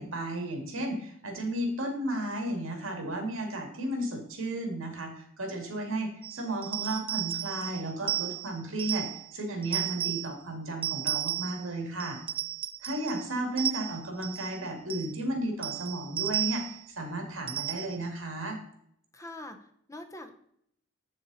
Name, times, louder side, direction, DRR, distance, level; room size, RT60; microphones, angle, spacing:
voice 1, 0.0-9.1 9.3-12.2 12.8-18.6, right 1 dB, 80° right, 3 dB, 2.3 m, -34 dB
sound 1, 6.2-9.2 9.6-10.3 10.8-11.7 12.0-13.2 13.6-14.6 14.9-15.1 15.6-16.8 17.5-18.1, right 12 dB, 25° right, 0.5 m, -33 dB
voice 2, 19.1-20.3, left 1 dB, 15° left, 7 dB, 0.8 m, -44 dB
7.8 x 6.7 x 4.1 m, 0.68 s
head